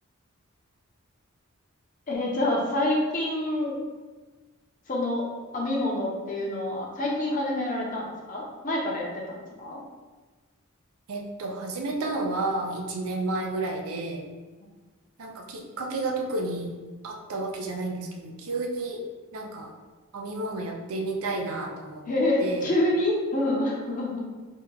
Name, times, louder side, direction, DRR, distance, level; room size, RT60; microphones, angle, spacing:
voice 1, 2.1-3.7 4.9-5.3 5.5-9.8 22.1-24.2, left 1 dB, 35° left, -2 dB, 0.6 m, -27 dB
voice 2, 11.1-14.2 15.2-16.7 17.0-19.0 19.3-19.7 20.1-22.0 22.4-22.7, right 2 dB, 90° right, 1 dB, 0.5 m, -31 dB
2.8 x 2.2 x 3.7 m, 1.3 s
head